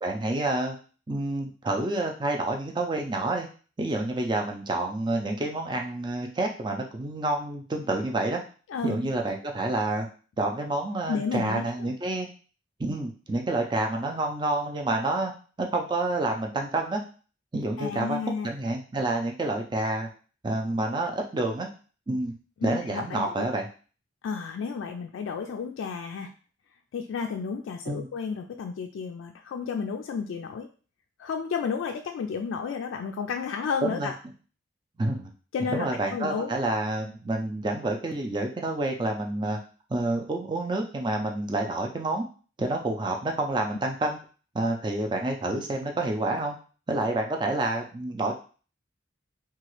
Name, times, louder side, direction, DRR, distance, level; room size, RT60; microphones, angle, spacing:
voice 1, 0.0-0.8 1.1-3.5 3.8-8.4 8.8-10.1 10.4-12.3 12.8-15.3 15.6-17.0 17.5-18.2 18.4-20.1 20.4-21.7 22.1-22.4 22.6-23.7 27.9-28.1 33.8-34.1 35.0-35.3 35.7-39.6 39.9-42.2 42.6-44.2 44.5-46.6 46.9-48.3, right 2 dB, 25° right, 2 dB, 0.4 m, -28 dB
voice 2, 11.1-11.9 17.8-18.5 22.6-23.5 24.2-26.3 26.9-30.7 31.2-34.1 35.5-36.5, left 5 dB, 90° left, 4 dB, 0.3 m, -32 dB
2.9 x 2.3 x 3.0 m, 0.38 s
head